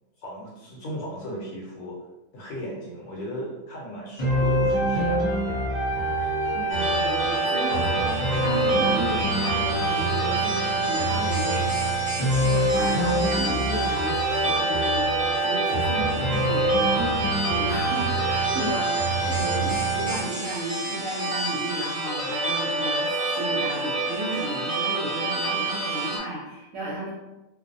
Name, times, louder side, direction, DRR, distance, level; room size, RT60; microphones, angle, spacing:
voice 1, 0.2-2.0 2.3-5.2 5.5-5.7, equal, 70° left, -4 dB, 1.0 m, -36 dB
sound 1, 4.2-20.2, right 2 dB, 35° left, 0.7 m, -25 dB
voice 2, 6.5-12.1 12.3-15.1 15.4-19.0 19.2-27.1, right 2 dB, 70° right, -6 dB, 0.9 m, -33 dB
sound 2, 6.7-26.2, right 2 dB, 45° right, 0.7 m, -29 dB
2.4 x 2.1 x 2.5 m, 0.99 s
omnidirectional pair, 1.5 m